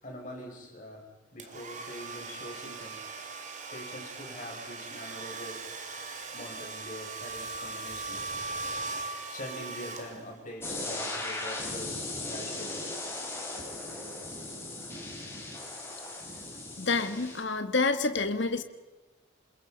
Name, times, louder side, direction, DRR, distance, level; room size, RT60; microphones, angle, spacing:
voice 1, 0.0-1.0 1.3-3.0 3.7-5.6 6.3-8.2 9.3-12.9 13.6-13.7, left 1 dB, 40° left, -1 dB, 6.3 m, -43 dB
Domestic sounds home sounds, 1.4-10.6, right 3 dB, 35° right, 2.6 m, -39 dB
sound 1, 10.6-17.4, left 2 dB, 10° left, 4.7 m, -38 dB
voice 2, 16.8-18.6, left 3 dB, 60° left, 10 dB, 1.6 m, -28 dB
28.0 x 21.5 x 5.3 m, 1.2 s
head